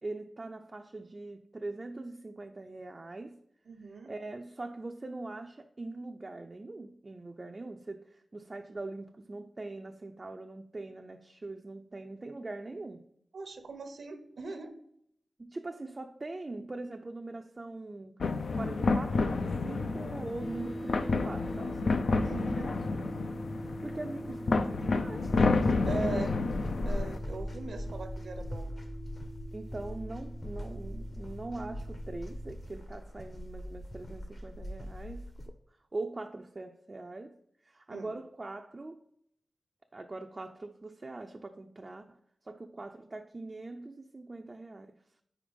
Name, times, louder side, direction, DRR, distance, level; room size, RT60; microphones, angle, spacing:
voice 1, 0.0-3.4 3.8-13.1 15.4-18.2 18.5-23.1 23.6-25.7 26.1-26.4 29.5-35.6 35.9-37.4 37.6-39.0 39.9-42.2 42.4-45.0, right 2 dB, 35° right, 0.4 m, -42 dB
voice 2, 3.7-4.1 13.3-14.7 22.2-22.7 25.9-26.3 26.8-28.8 37.9-38.1, right 3 dB, 80° right, 0.8 m, -40 dB
sound 1, 18.2-27.2, left 3 dB, 70° left, 0.4 m, -30 dB
sound 2, 20.4-32.5, equal, 20° left, 0.6 m, -43 dB
sound 3, 25.2-35.5, left 1 dB, 45° left, 0.9 m, -41 dB
5.0 x 4.6 x 5.1 m
wide cardioid pair, 105°, 0 cm